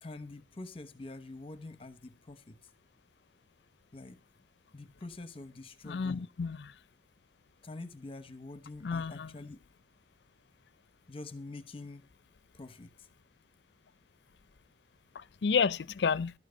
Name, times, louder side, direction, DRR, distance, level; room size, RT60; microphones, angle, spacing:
voice 1, 0.0-2.7 3.9-4.2 4.7-6.3 7.6-9.6 11.1-12.1 12.5-13.1, left 2 dB, 30° left, 0.9 m, -46 dB
voice 2, 5.9-6.7 8.8-9.3 15.1-16.3, left 5 dB, 75° left, 0.5 m, -31 dB
12.0 x 9.2 x 5.1 m
head